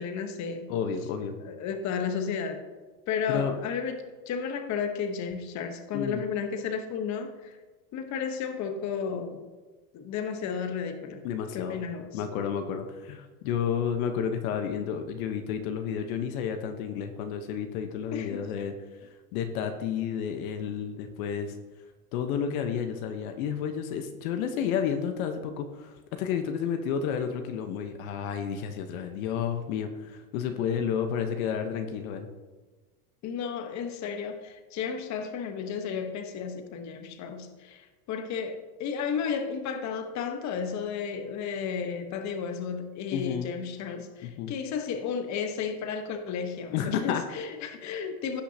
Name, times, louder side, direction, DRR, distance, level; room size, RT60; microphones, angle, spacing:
voice 1, 0.0-0.7 1.4-2.6 3.1-7.5 7.9-9.4 9.9-11.2 11.5-12.2 18.1-18.5 33.2-48.4, left 6 dB, 35° left, 6 dB, 1.1 m, -33 dB
voice 2, 0.7-1.4 3.3-3.6 5.9-6.2 11.2-11.8 12.1-18.7 19.3-21.6 22.1-32.3 43.1-43.5 44.2-44.5 46.7-47.3, left 7 dB, 65° left, 6 dB, 1.1 m, -31 dB
16.5 x 5.7 x 2.8 m, 1.3 s
supercardioid pair, 115°, 46 cm